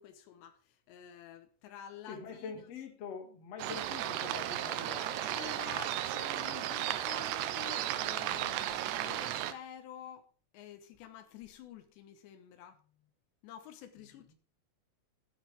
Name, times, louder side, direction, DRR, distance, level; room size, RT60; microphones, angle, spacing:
voice 1, 0.0-2.7 3.7-3.8 5.2-13.1 13.4-14.3, left 10 dB, 85° left, 3.2 m, -50 dB
voice 2, 2.1-5.4, left 5 dB, 45° left, 2.6 m, -45 dB
sound 1, 3.6-9.5, right 12 dB, 80° right, 2.9 m, -35 dB
13.5 x 10.0 x 3.4 m
omnidirectional pair, 5.1 m